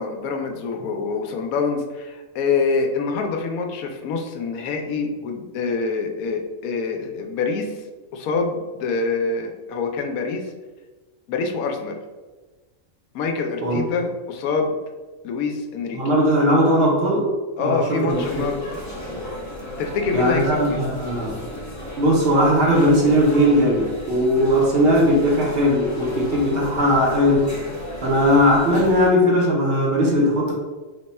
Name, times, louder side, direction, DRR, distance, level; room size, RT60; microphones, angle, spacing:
voice 1, 0.0-7.8 8.1-10.5 11.3-12.0 13.1-14.8 15.2-16.0 17.6-18.6 19.8-20.8, left 4 dB, 85° left, 3 dB, 1.0 m, -25 dB
voice 2, 15.9-17.3 17.6-18.4 20.1-21.3 22.0-27.5 28.0-30.5, equal, 55° right, -2 dB, 0.8 m, -18 dB
sound 1, 18.1-29.1, left 1 dB, 20° left, 0.5 m, -34 dB
3.3 x 2.2 x 4.1 m, 1.3 s
omnidirectional pair, 1.4 m